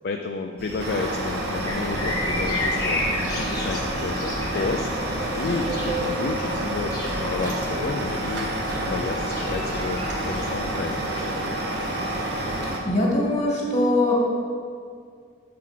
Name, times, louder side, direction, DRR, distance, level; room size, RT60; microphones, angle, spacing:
voice 1, 0.0-5.0 5.4-11.7, left 4 dB, 55° left, 4 dB, 0.4 m, -31 dB
Screaming, 0.6-12.8, right 1 dB, 35° right, 0.8 m, -36 dB
Truck, 0.8-12.8, right 1 dB, 60° right, 1.0 m, -29 dB
sound 1, 1.7-10.6, left 1 dB, 20° left, 1.1 m, -33 dB
voice 2, 12.8-14.1, left 1 dB, 35° left, -2 dB, 1.7 m, -21 dB
7.5 x 4.8 x 5.8 m, 2.2 s
head